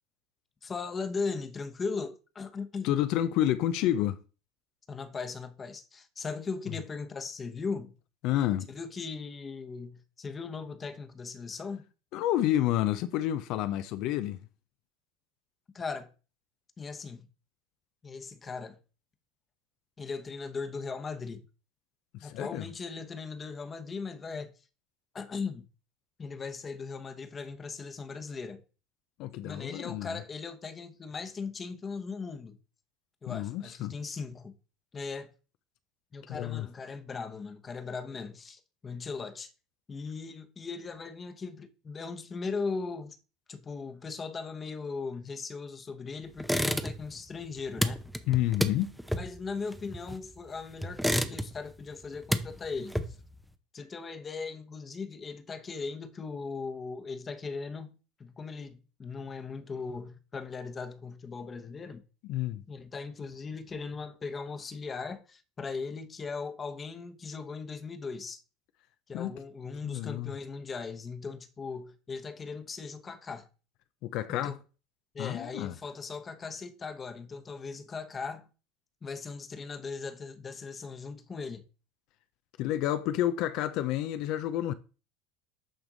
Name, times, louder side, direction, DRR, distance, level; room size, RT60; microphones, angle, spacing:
voice 1, 0.6-2.9 4.9-7.9 8.7-11.9 15.7-16.1 16.8-17.3 18.0-18.8 20.0-21.5 22.2-24.5 25.1-25.7 26.2-28.6 29.4-32.6 33.2-34.5 34.9-35.3 36.1-39.5 39.9-43.2 43.5-48.0 49.1-53.2 53.7-62.0 62.7-68.4 69.1-73.5 74.3-74.6 75.1-78.5 79.0-81.6, left 4 dB, 25° left, 1.0 m, -38 dB
voice 2, 2.8-4.2 8.2-8.7 12.1-14.4 22.1-22.7 29.2-30.2 33.3-33.9 36.3-36.7 48.3-48.9 62.2-62.6 69.1-69.3 69.8-70.3 74.0-74.6 75.2-75.7 82.6-84.7, left 13 dB, 60° left, 0.5 m, -29 dB
sound 1, 46.4-47.2 47.4-50.4 50.8-51.7 52.0-53.4, equal, ahead, 0.6 m, -31 dB
8.8 x 3.5 x 3.9 m
supercardioid pair, 115°, 0 cm